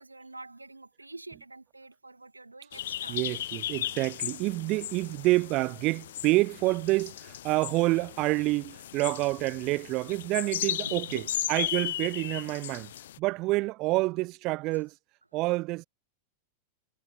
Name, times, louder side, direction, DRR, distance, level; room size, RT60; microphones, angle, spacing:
voice 1, 0.0-3.2 10.8-11.4, right 2 dB, 80° right, 1.9 m, -46 dB
sound 1, 2.7-13.2, left 12 dB, 60° left, 0.5 m, -36 dB
voice 2, 3.1-11.2 11.5-12.9 13.2-14.9 15.3-15.8, right 21 dB, 40° right, 1.2 m, -28 dB
figure-of-eight pair, 90°, 0 cm